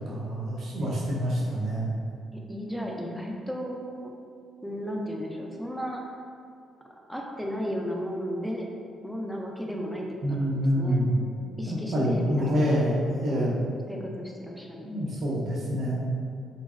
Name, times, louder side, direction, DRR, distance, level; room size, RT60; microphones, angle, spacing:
voice 1, 0.1-1.9 10.2-11.1 11.7-13.5 14.8-16.1, equal, 60° right, -6 dB, 0.6 m, -27 dB
voice 2, 2.3-4.1 4.6-6.0 6.9-8.7 9.0-11.1 11.6-12.8 13.9-15.0, equal, ahead, 0 dB, 0.4 m, -34 dB
3.8 x 2.0 x 2.3 m, 2.3 s
cardioid pair, 90°, 0 cm